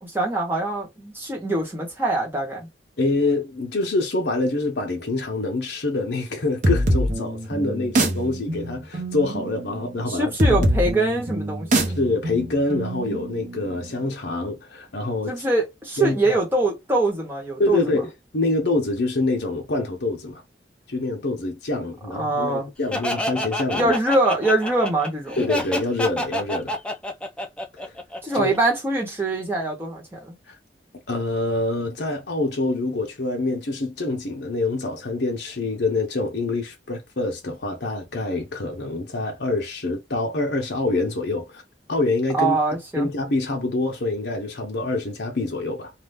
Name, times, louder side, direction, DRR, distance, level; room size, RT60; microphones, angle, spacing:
voice 1, 0.0-2.7 10.1-12.0 15.3-18.0 22.1-22.7 23.7-25.4 28.2-30.3 42.3-43.1, right 2 dB, 10° right, 1.2 m, -23 dB
voice 2, 3.0-10.6 11.9-15.3 16.0-16.4 17.6-20.4 20.9-23.9 25.4-26.7 27.8-27.9 28.3-28.5 30.5-30.6 31.1-41.6 41.9-42.6 42.9-45.9, left 2 dB, 60° left, 0.8 m, -26 dB
sound 1, 6.6-14.0, right 1 dB, 40° right, 0.8 m, -25 dB
Laughter, 22.9-28.6, left 1 dB, 5° left, 0.4 m, -28 dB
2.7 x 2.3 x 3.4 m
head